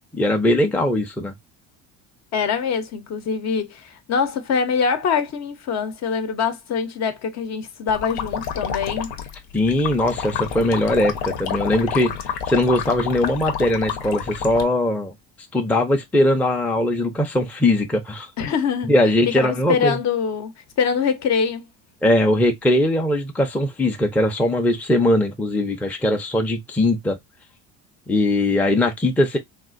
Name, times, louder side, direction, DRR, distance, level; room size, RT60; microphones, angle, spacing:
voice 1, 0.1-1.3 9.5-15.1 15.5-18.3 18.9-20.0 22.0-27.2 28.1-29.4, left 1 dB, 5° left, 0.5 m, -20 dB
voice 2, 2.3-9.1 18.4-18.9 19.4-20.5 20.8-21.7, left 6 dB, 50° left, 0.7 m, -24 dB
sound 1, 7.9-14.6, left 7 dB, 80° left, 0.9 m, -29 dB
3.5 x 2.4 x 2.4 m
cardioid pair, 115°, 36 cm